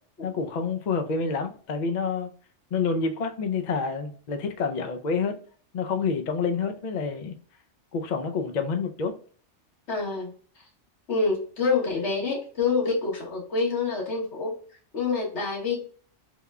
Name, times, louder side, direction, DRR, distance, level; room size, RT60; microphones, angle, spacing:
voice 1, 0.2-2.3 2.7-5.4 5.7-7.4 7.9-9.1, left 5 dB, 55° left, 0.5 m, -28 dB
voice 2, 9.9-10.3 11.1-14.5 14.9-15.8, left 4 dB, 75° left, 1.7 m, -26 dB
3.5 x 2.2 x 3.4 m
omnidirectional pair, 1.2 m